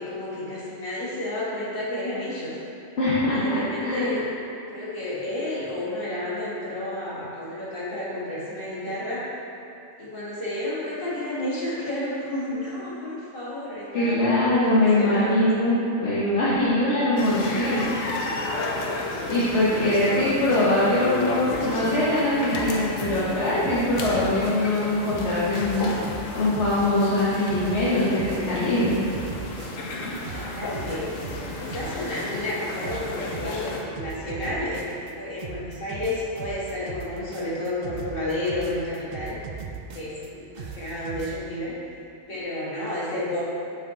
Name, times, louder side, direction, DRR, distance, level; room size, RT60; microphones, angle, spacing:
voice 1, 0.0-2.5 3.3-4.2 4.7-9.2 10.0-14.3 14.6-15.5 15.8-15.9 19.7-20.4 30.2-31.0 31.6-39.4 39.9-41.7 42.3-43.4, left 1 dB, 45° left, -9 dB, 2.0 m, -31 dB
voice 2, 3.0-4.1 13.9-17.9 19.3-25.9 26.3-29.0, left 1 dB, 65° left, -10 dB, 1.3 m, -22 dB
sound 1, 17.2-33.8, left 2 dB, 85° left, 1.1 m, -32 dB
sound 2, 21.5-22.2 22.5-24.8 25.1-30.0 30.2-32.5 32.8-35.1 35.4-40.3 40.6-41.4, right 6 dB, 80° right, 0.4 m, -39 dB
7.0 x 5.2 x 3.7 m, 2.7 s
omnidirectional pair, 1.3 m